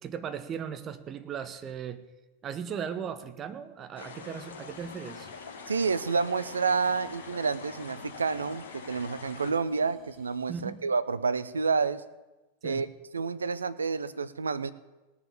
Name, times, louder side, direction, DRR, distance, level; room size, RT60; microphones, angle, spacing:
voice 1, 0.0-2.0 2.4-5.3 10.5-10.8 12.6-12.8, right 7 dB, 30° right, 10 dB, 1.0 m, -37 dB
sound 1, 4.0-9.5, left 5 dB, 60° left, 3.0 m, -44 dB
sound 2, 4.3-10.8, left 5 dB, 20° left, 3.1 m, -58 dB
voice 2, 5.7-12.0 12.6-12.9 13.1-14.7, right 5 dB, 75° right, 14 dB, 0.6 m, -29 dB
17.5 x 7.2 x 8.4 m, 1.1 s
figure-of-eight pair, 90°, 0 cm